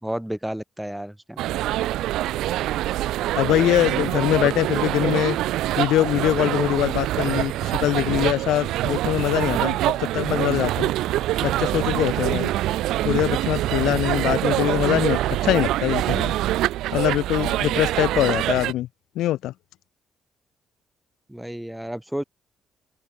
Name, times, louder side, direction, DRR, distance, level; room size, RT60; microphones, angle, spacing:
voice 1, 0.0-1.4 17.6-17.9 21.3-22.2, right 1 dB, 5° right, 5.2 m, -32 dB
sound 1, 1.4-18.7, right 15 dB, 85° right, 7.3 m, -25 dB
voice 2, 3.4-5.4 5.8-10.9 11.4-12.5 13.0-16.3 16.9-18.9 19.1-19.5, left 14 dB, 85° left, 1.1 m, -23 dB
cardioid pair, 90°, 0 cm